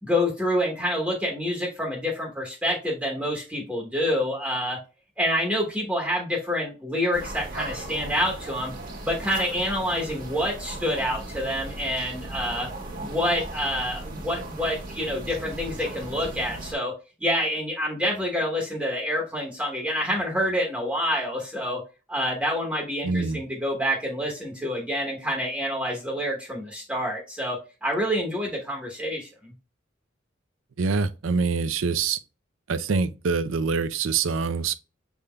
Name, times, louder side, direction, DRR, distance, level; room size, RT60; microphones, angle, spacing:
voice 1, 0.0-4.8 5.2-8.7 9.0-12.7 13.0-16.9 17.2-21.8 22.1-29.3, equal, 5° right, 1.0 m, -27 dB
sound 1, 7.1-16.7, right 2 dB, 45° right, 1.2 m, -37 dB
voice 2, 23.0-23.4 30.8-32.2 32.7-34.8, right 5 dB, 85° right, 0.5 m, -25 dB
6.6 x 3.6 x 2.2 m
head